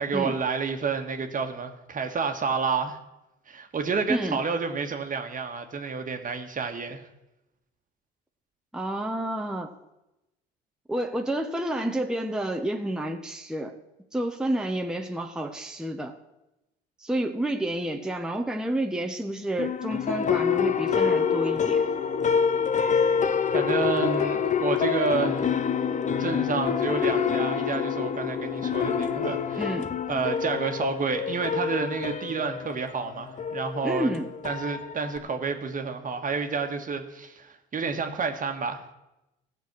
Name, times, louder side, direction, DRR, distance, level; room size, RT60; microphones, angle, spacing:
voice 1, 0.0-3.0 3.5-7.0 23.0-23.1 23.5-25.5 26.2-29.7 30.1-34.1 34.4-38.9, right 5 dB, 40° right, 6 dB, 1.6 m, -30 dB
voice 2, 4.1-4.4 8.7-9.7 10.9-13.8 14.1-16.1 17.0-21.8 29.6-29.9 33.8-34.3, right 1 dB, 5° right, 3 dB, 1.0 m, -29 dB
sound 1, 19.6-35.2, left 7 dB, 35° left, 0.8 m, -26 dB
15.5 x 6.9 x 6.1 m, 0.94 s
supercardioid pair, 75°, 21 cm